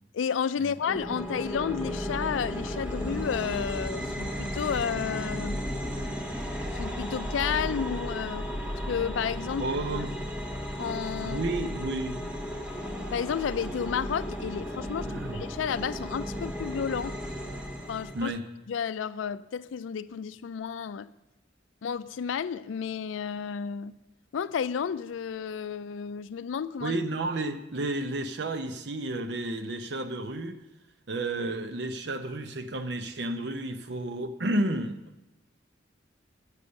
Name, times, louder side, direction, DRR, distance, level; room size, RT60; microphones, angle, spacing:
voice 1, 0.1-5.6 6.7-8.5 8.9-9.7 10.0-10.1 10.8-11.5 13.1-17.2 17.9-18.3 18.7-21.1 21.8-24.0 24.3-27.0, left 7 dB, 90° left, 16 dB, 0.4 m, -32 dB
sound 1, 0.9-18.3, equal, 5° right, 0.9 m, -34 dB
voice 2, 9.6-10.1 11.2-12.3 15.0-15.4 18.1-18.4 26.8-30.6 31.1-35.0, right 2 dB, 60° right, 9 dB, 0.7 m, -31 dB
8.2 x 6.9 x 6.4 m, 0.98 s
head